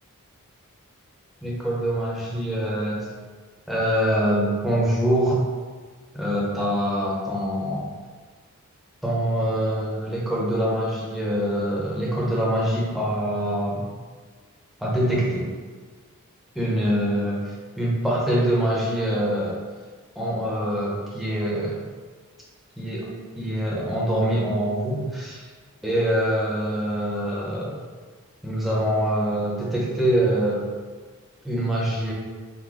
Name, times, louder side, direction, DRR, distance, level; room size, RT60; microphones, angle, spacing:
voice 1, 1.4-3.1 3.7-5.4 6.1-7.9 9.0-13.9 14.8-15.4 16.5-19.6 20.1-21.8 22.8-23.1 23.4-25.4 25.8-27.7 28.4-30.6 31.4-32.1, equal, ahead, -6 dB, 0.8 m, -24 dB
4.1 x 2.2 x 4.5 m, 1.5 s
head